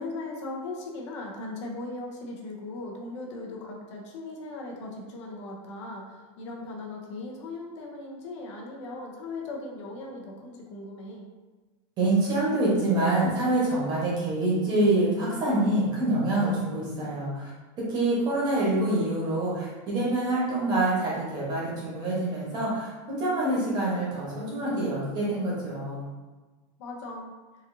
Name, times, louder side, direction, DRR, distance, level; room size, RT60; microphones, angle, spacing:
voice 1, 0.0-11.3 26.8-27.3, left 2 dB, 65° left, 0 dB, 0.8 m, -38 dB
voice 2, 12.0-17.5 17.8-26.1, right 2 dB, 25° right, -6 dB, 1.1 m, -26 dB
4.0 x 2.6 x 2.7 m, 1.3 s
supercardioid pair, 170°, 16 cm